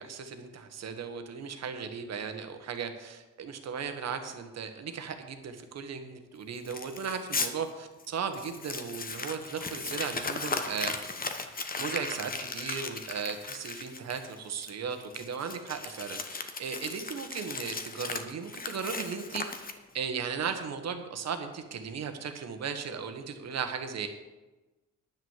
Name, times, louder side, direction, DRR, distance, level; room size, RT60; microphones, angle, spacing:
voice 1, 0.0-11.1 11.8-19.7 19.9-24.1, right 6 dB, 60° right, 7 dB, 1.5 m, -36 dB
Crumpling crinkling, 6.7-7.5 8.0-8.1 8.3-20.0, left 4 dB, 30° left, 1.1 m, -37 dB
10.5 x 6.4 x 7.3 m, 1.1 s
cardioid pair, 90°, 30 cm